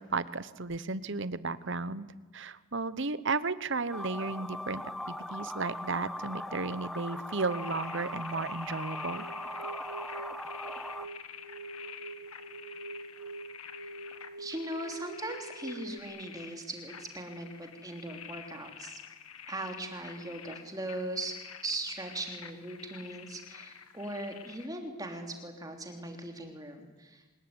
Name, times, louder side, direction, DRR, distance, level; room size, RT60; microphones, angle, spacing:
voice 1, 0.0-2.1 2.3-9.3, right 3 dB, 55° right, 15 dB, 1.1 m, -34 dB
sound 1, 3.9-11.1, left 1 dB, ahead, 1.0 m, -40 dB
sound 2, 7.5-24.7, left 8 dB, 85° left, 2.0 m, -48 dB
sound 3, 9.0-16.0, right 3 dB, 70° right, 2.0 m, -45 dB
voice 2, 14.4-19.0 19.5-21.4 21.6-27.4, right 1 dB, 15° right, 4 dB, 3.3 m, -39 dB
25.0 x 21.5 x 9.8 m, 1.2 s
head